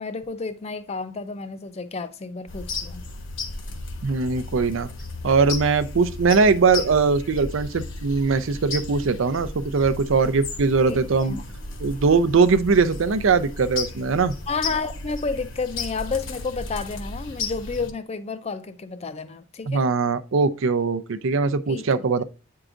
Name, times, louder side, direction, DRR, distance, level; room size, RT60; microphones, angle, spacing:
voice 1, 0.0-3.0 10.9-11.4 14.5-19.9 21.7-21.8, left 4 dB, 30° left, 0.5 m, -31 dB
sound 1, 2.5-17.9, left 3 dB, 65° left, 1.1 m, -34 dB
voice 2, 4.0-4.9 5.2-11.4 11.8-14.3 19.7-22.2, right 4 dB, 70° right, 0.5 m, -21 dB
8.8 x 4.7 x 2.5 m
head